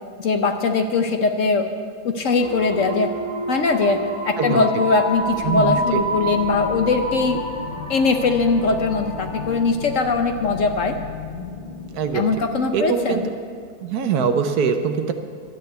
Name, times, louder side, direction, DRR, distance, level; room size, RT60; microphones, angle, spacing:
voice 1, 0.2-1.7 2.0-3.1 3.5-7.4 7.9-10.9 12.1-13.3, left 4 dB, 55° left, 6 dB, 1.0 m, -21 dB
sound 1, 2.4-9.7, right 1 dB, 15° right, 1.8 m, -29 dB
sound 2, 5.1-13.3, left 4 dB, 35° left, 1.0 m, -36 dB
voice 2, 5.4-6.0 11.9-12.3 12.7-13.2 13.8-15.1, right 6 dB, 65° right, 7 dB, 1.3 m, -22 dB
11.5 x 9.6 x 8.2 m, 2.2 s
omnidirectional pair, 1.8 m